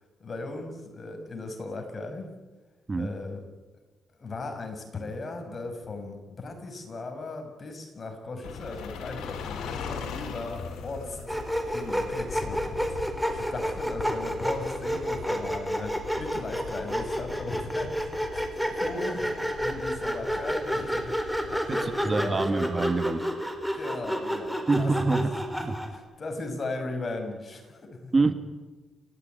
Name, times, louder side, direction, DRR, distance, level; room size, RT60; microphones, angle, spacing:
voice 1, 0.2-2.3 2.9-3.4 4.2-11.4 11.7-13.0 13.3-19.3 19.6-22.7 23.7-25.3 25.9-28.1, left 2 dB, 40° left, 5 dB, 6.5 m, -37 dB
sound 1, 8.4-22.1, left 6 dB, 85° left, 3.7 m, -41 dB
Sawing, 11.3-26.0, equal, ahead, 4.4 m, -30 dB
voice 2, 21.7-23.3 24.7-25.3 25.6-25.8 28.1-28.3, right 3 dB, 30° right, 10 dB, 1.7 m, -26 dB
30.0 x 14.5 x 9.5 m, 1.2 s
cardioid pair, 75°, 0 cm